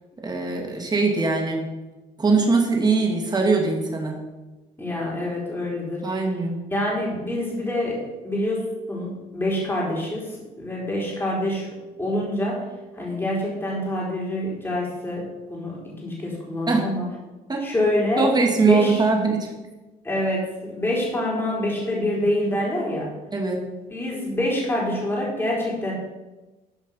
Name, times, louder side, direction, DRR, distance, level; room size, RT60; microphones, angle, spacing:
voice 1, 0.2-1.7 2.2-4.2 6.0-6.6 16.7-16.9 17.5-17.6 18.2-19.5 23.3-23.6, right 4 dB, 25° right, 1 dB, 2.3 m, -21 dB
voice 2, 4.8-6.2 6.7-11.7 12.0-12.7 12.9-17.1 17.6-19.0 20.0-23.1 23.9-25.9, left 1 dB, 15° left, -5 dB, 4.0 m, -26 dB
12.5 x 5.2 x 5.6 m, 1.1 s
cardioid pair, 110°, 17 cm